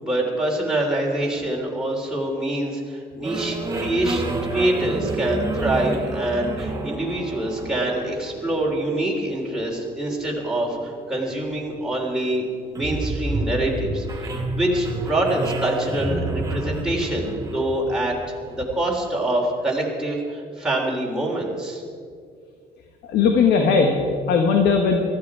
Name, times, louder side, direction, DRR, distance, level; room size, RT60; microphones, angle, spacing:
voice 1, 0.0-4.2 4.5-12.4 12.7-21.8, right 1 dB, 5° right, -3 dB, 3.5 m, -25 dB
sound 1, 3.2-18.6, right 2 dB, 20° right, 1.7 m, -30 dB
voice 2, 23.1-25.0, left 5 dB, 75° left, 3 dB, 1.6 m, -18 dB
18.5 x 14.0 x 4.9 m, 2.2 s
cardioid pair, 110°, 17 cm